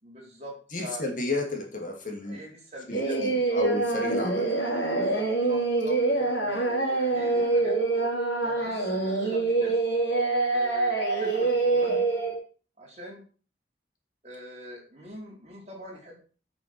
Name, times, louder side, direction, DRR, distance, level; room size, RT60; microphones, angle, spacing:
voice 1, 0.0-1.0 2.2-3.6 4.9-7.8 8.4-9.8 10.5-12.0 12.8-13.2 14.2-16.2, equal, 35° right, -2 dB, 4.4 m, -44 dB
voice 2, 0.7-2.4 2.9-4.5, left 2 dB, 45° left, 2 dB, 2.7 m, -32 dB
Singing, 2.9-12.3, right 3 dB, 80° left, 4.4 m, -25 dB
8.4 x 7.6 x 6.2 m, 0.38 s
head